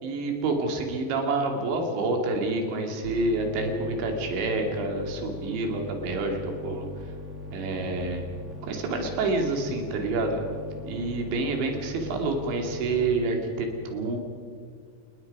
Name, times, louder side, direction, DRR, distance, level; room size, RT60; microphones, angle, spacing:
voice 1, 0.0-6.9 7.5-8.2 8.6-10.4 10.9-14.2, right 3 dB, 80° right, 3 dB, 4.9 m, -28 dB
sound 1, 3.0-13.3, left 1 dB, 45° right, 0.9 m, -40 dB
29.5 x 19.5 x 5.4 m, 2.1 s
omnidirectional pair, 5.1 m